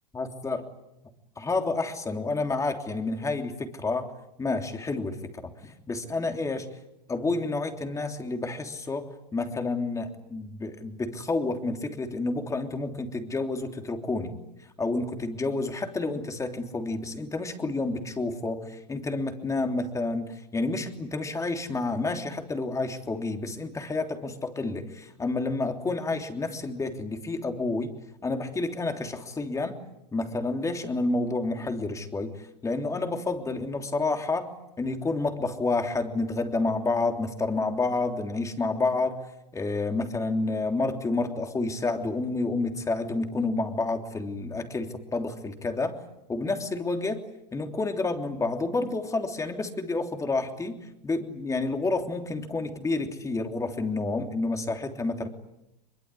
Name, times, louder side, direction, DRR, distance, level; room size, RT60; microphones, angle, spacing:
voice 1, 0.1-0.6 1.4-4.1 4.4-6.7 7.1-14.3 14.8-27.9 28.2-29.8 30.1-34.5 34.8-39.2 39.5-46.0 46.3-47.2 47.5-50.8 51.0-55.3, left 3 dB, 15° left, 5 dB, 3.3 m, -29 dB
23.5 x 23.0 x 9.9 m, 0.90 s
hypercardioid pair, 110°, 21 cm